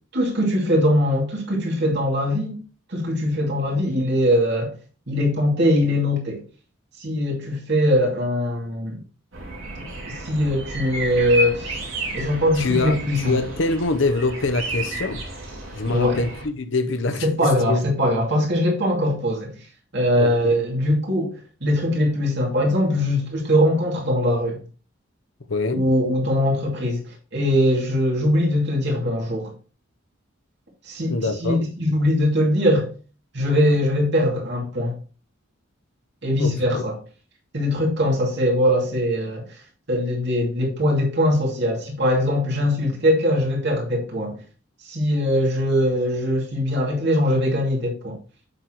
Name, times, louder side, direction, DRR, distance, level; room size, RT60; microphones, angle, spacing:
voice 1, 0.1-2.6 2.9-4.7 5.1-6.4 7.0-9.0 10.1-11.8 12.1-13.4 15.9-16.2 17.2-19.5 19.9-24.6 25.7-29.5 30.8-31.1 31.4-32.9 33.3-35.0 36.2-37.0 37.5-39.6 39.9-44.4 44.8-48.2, equal, 55° right, 2.5 m, -21 dB
sound 1, 9.3-16.5, right 1 dB, 75° right, 2.7 m, -32 dB
voice 2, 12.6-15.2 15.7-17.8 20.1-20.6 25.5-25.9 31.1-31.6 36.4-36.8, left 3 dB, 65° left, 0.8 m, -25 dB
7.9 x 6.3 x 3.0 m
head